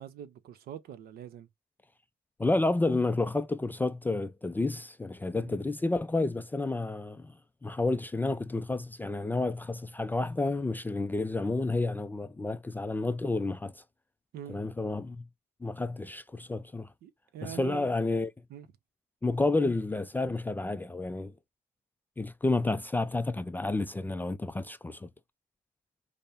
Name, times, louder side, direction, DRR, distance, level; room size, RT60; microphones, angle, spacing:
voice 1, 0.0-1.5 5.3-5.6 14.3-14.6 17.0-18.0 18.5-18.7, right 10 dB, 65° right, 0.7 m, -44 dB
voice 2, 2.4-7.3 7.6-13.8 14.5-15.2 15.6-16.9 17.4-18.3 19.2-21.3 22.2-25.1, left 2 dB, 10° left, 0.3 m, -30 dB
5.2 x 2.0 x 4.2 m
cardioid pair, 110°, 17 cm